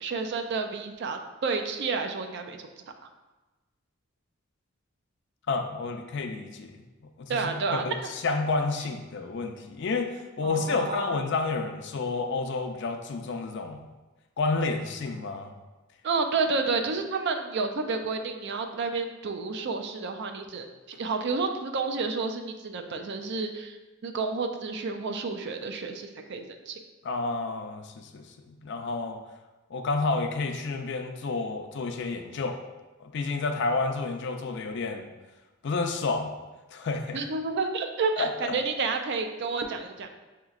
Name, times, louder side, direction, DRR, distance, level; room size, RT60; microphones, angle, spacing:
voice 1, 0.0-2.6 7.3-8.1 10.4-11.1 16.0-23.8 24.0-26.8 37.1-40.1, right 4 dB, 55° right, 6 dB, 0.4 m, -30 dB
voice 2, 5.5-6.8 7.2-13.9 14.4-15.5 27.0-29.2 29.7-32.6 33.0-35.1 35.6-36.3 36.7-37.2 38.2-38.6, left 3 dB, 60° left, 5 dB, 0.4 m, -30 dB
6.2 x 2.9 x 2.4 m, 1.2 s
head